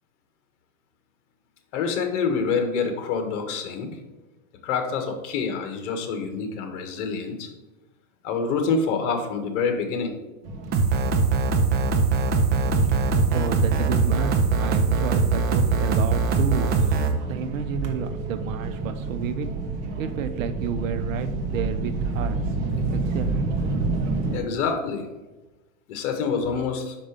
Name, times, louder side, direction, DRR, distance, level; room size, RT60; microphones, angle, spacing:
voice 1, 1.7-3.9 4.6-7.5 8.2-10.1 24.3-25.1 25.9-26.9, left 5 dB, 60° left, 5 dB, 1.5 m, -26 dB
sound 1, 10.4-24.4, right 3 dB, 40° right, 1.2 m, -30 dB
sound 2, 10.7-17.1, right 4 dB, 25° right, 0.6 m, -22 dB
voice 2, 12.9-19.5 20.0-22.4 22.9-23.4, right 7 dB, 70° right, 10 dB, 0.9 m, -31 dB
5.9 x 5.3 x 5.1 m, 1.1 s
supercardioid pair, 150°, 42 cm